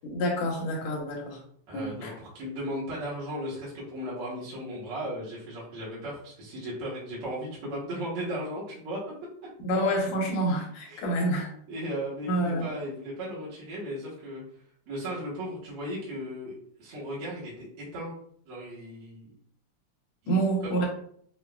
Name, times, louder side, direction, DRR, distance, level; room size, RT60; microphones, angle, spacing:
voice 1, 0.0-1.4 1.7-2.1 9.6-11.5 12.3-12.7 20.3-20.9, right 1 dB, 70° left, -1 dB, 2.1 m, -28 dB
voice 2, 1.7-9.0 10.9-11.1 11.7-14.4 14.9-18.1 18.5-19.3 20.2-20.9, equal, 60° right, -8 dB, 1.7 m, -36 dB
5.7 x 2.3 x 2.3 m, 0.62 s
omnidirectional pair, 3.3 m